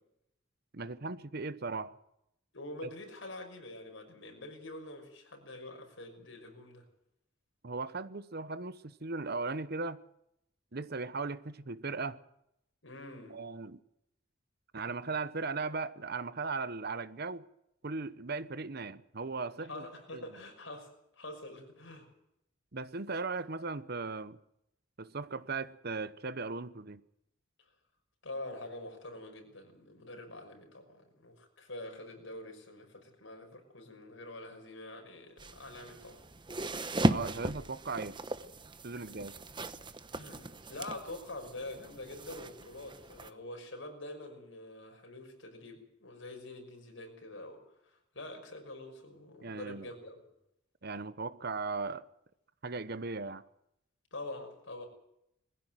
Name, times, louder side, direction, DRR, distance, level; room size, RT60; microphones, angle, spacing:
voice 1, 0.7-1.9 2.8-2.9 7.6-10.0 10.7-12.2 13.3-13.8 14.7-17.4 17.8-19.8 20.1-20.2 22.7-24.4 25.0-27.0 37.1-38.2 38.8-39.3 49.4-49.9 50.8-52.1 52.6-53.4, right 4 dB, 55° right, 1.0 m, -37 dB
voice 2, 2.5-6.9 12.8-13.4 19.7-22.1 28.2-36.2 40.1-50.2 54.1-54.9, left 1 dB, 70° left, 5.9 m, -46 dB
sound 1, 35.4-43.3, right 1 dB, 25° right, 1.0 m, -37 dB
21.0 x 15.5 x 9.1 m
head